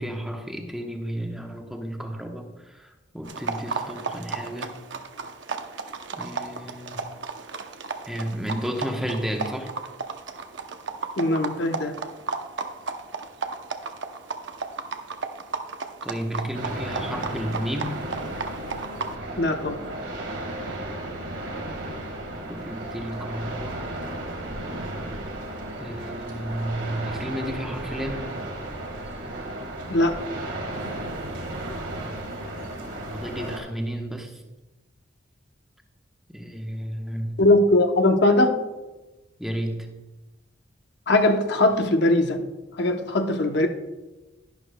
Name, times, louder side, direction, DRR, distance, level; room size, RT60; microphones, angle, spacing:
voice 1, 0.0-4.7 6.1-7.0 8.1-9.8 16.0-18.0 22.3-23.9 25.8-28.4 33.1-34.4 36.3-37.4 39.4-40.1, equal, ahead, 2 dB, 0.9 m, -32 dB
sound 1, 3.2-19.1, right 4 dB, 70° right, 0.7 m, -34 dB
voice 2, 11.2-11.9 19.4-19.8 29.9-30.1 37.4-38.6 41.1-42.4 42.8-43.7, left 2 dB, 60° left, 5 dB, 0.7 m, -20 dB
sound 2, 16.5-33.6, right 1 dB, 85° right, 1.7 m, -34 dB
11.5 x 11.0 x 2.2 m, 1.1 s
head